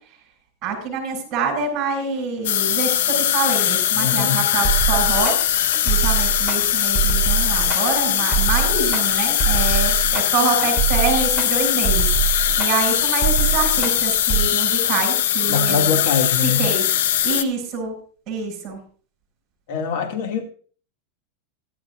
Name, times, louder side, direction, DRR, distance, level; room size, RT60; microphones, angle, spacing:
voice 1, 0.6-5.3 5.8-15.9 16.4-16.8 17.2-17.9 18.3-18.8, right 4 dB, 30° right, -2 dB, 7.2 m, -26 dB
sound 1, 2.4-17.4, left 11 dB, 80° left, 0.7 m, -21 dB
voice 2, 3.9-4.4 15.5-16.7 19.7-20.4, left 6 dB, 65° left, 4 dB, 2.2 m, -23 dB
sound 2, 4.6-14.5, right 8 dB, 10° left, 3.3 m, -24 dB
17.0 x 12.0 x 2.5 m, 0.42 s
supercardioid pair, 150°, 0 cm